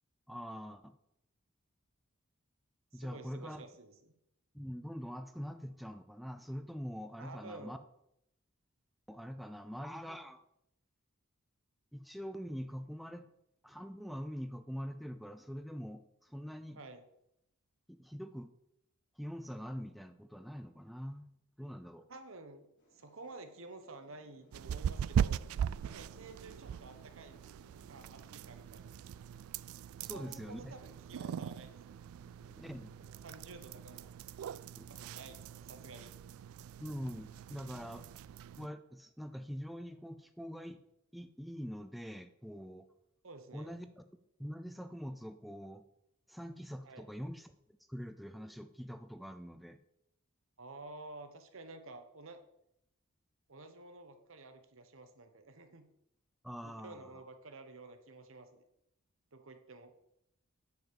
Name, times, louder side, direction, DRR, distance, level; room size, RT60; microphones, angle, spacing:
voice 1, 0.3-0.9 2.9-3.7 4.5-7.8 9.1-10.4 11.9-13.3 13.6-16.8 17.9-18.5 19.2-21.3 21.6-22.0 30.0-30.7 32.5-32.9 34.7-34.8 36.8-38.1 38.6-40.8 41.1-42.9 43.5-44.0 44.4-45.8 46.3-47.5 47.9-49.8 56.4-57.0, equal, ahead, 8 dB, 0.4 m, -44 dB
voice 2, 2.9-4.1 7.2-7.8 16.7-17.0 22.1-25.4 25.8-27.4 27.9-28.9 30.0-32.0 33.0-34.1 34.9-36.1 43.2-43.8 46.8-47.1 50.6-52.4 53.5-55.9 56.6-58.6 59.3-59.9, right 2 dB, 70° right, 8 dB, 1.2 m, -51 dB
sound 1, 22.8-29.4, equal, 55° left, 3.3 m, -67 dB
sound 2, 24.5-38.7, right 8 dB, 85° right, 0.3 m, -40 dB
9.4 x 5.1 x 6.9 m, 0.79 s
head